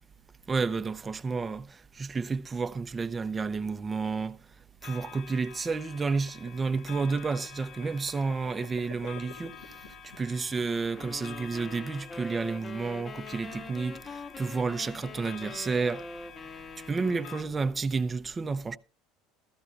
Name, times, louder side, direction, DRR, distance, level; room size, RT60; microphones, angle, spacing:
voice 1, 0.5-4.4 4.8-9.7 10.2-16.0 16.9-18.8, right 4 dB, 25° right, 0.6 m, -31 dB
sound 1, 4.8-17.4, left 9 dB, 60° left, 0.8 m, -49 dB
sound 2, 6.2-11.5, left 7 dB, 85° left, 1.9 m, -49 dB
sound 3, 11.0-17.9, left 4 dB, 30° left, 0.9 m, -44 dB
15.0 x 13.5 x 2.5 m
supercardioid pair, 90°, 0 cm